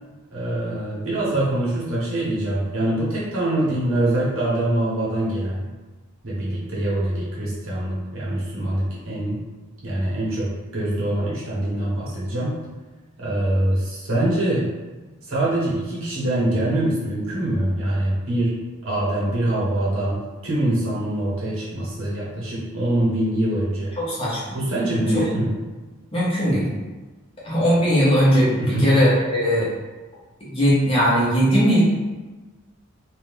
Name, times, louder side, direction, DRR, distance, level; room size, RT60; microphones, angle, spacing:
voice 1, 0.3-5.7 6.2-9.4 9.8-12.5 13.2-14.7 15.3-18.5 18.8-23.9 24.5-25.5 28.6-29.0, right 1 dB, 65° right, -7 dB, 1.2 m, -24 dB
voice 2, 24.0-24.6 25.1-25.2 26.1-26.7 27.4-29.7 30.4-31.8, equal, 25° left, -8 dB, 0.9 m, -19 dB
2.7 x 2.6 x 3.5 m, 1.2 s
head